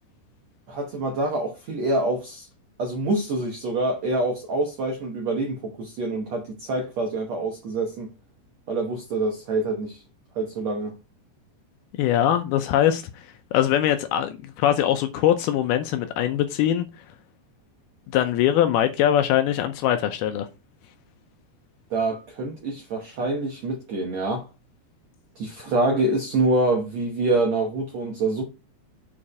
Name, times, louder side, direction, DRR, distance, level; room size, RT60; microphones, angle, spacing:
voice 1, 0.7-2.5 2.8-8.1 8.7-10.0 10.3-10.9 21.9-24.5 25.4-28.4, right 2 dB, 75° right, 1.5 m, -26 dB
voice 2, 12.0-16.9 18.1-20.5, left 11 dB, 80° left, 2.3 m, -22 dB
7.4 x 4.4 x 4.8 m
omnidirectional pair, 4.9 m